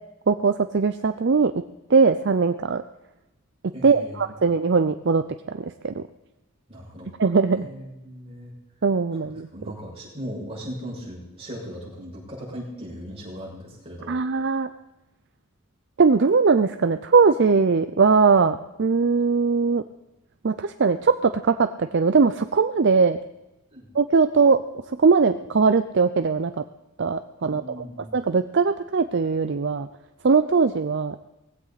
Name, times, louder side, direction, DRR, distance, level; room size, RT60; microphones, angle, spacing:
voice 1, 0.3-1.5 1.9-2.8 3.8-5.2 5.8-6.0 7.2-7.7 8.8-9.5 14.1-14.7 16.0-19.8 20.4-23.2 24.0-24.6 25.0-26.5 27.0-27.6 28.1-29.9 30.2-31.2, right 4 dB, 55° right, 9 dB, 0.5 m, -20 dB
voice 2, 3.7-4.3 6.7-7.1 7.5-8.5 9.1-14.2 23.7-23.9 27.4-28.2, equal, 25° right, -4 dB, 6.4 m, -38 dB
19.0 x 16.0 x 4.1 m, 0.98 s
head